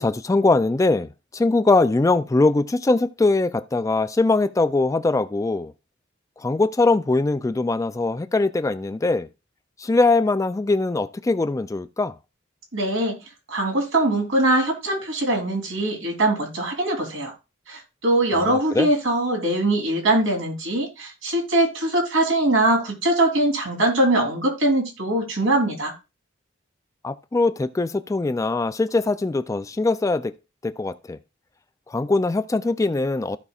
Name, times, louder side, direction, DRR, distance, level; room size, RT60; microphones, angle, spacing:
voice 1, 0.0-5.7 6.4-9.3 9.8-12.1 18.3-18.9 27.0-30.3 30.6-31.2 31.9-33.4, left 3 dB, 15° left, 0.3 m, -21 dB
voice 2, 12.7-13.2 13.5-17.3 17.7-25.9, right 1 dB, 75° right, 3.2 m, -22 dB
15.5 x 5.4 x 2.4 m
head